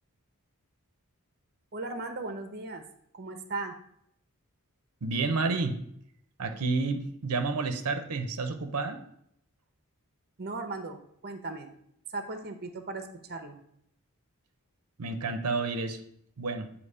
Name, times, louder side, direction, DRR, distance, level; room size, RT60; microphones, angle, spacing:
voice 1, 1.7-2.8 3.1-3.7 10.4-11.0 11.2-11.7 12.1-13.6, right 3 dB, 45° right, 7 dB, 0.7 m, -37 dB
voice 2, 5.0-5.8 6.4-9.0 15.0-16.0 16.4-16.7, right 3 dB, 90° right, 6 dB, 0.7 m, -30 dB
8.1 x 2.8 x 5.4 m, 0.71 s
head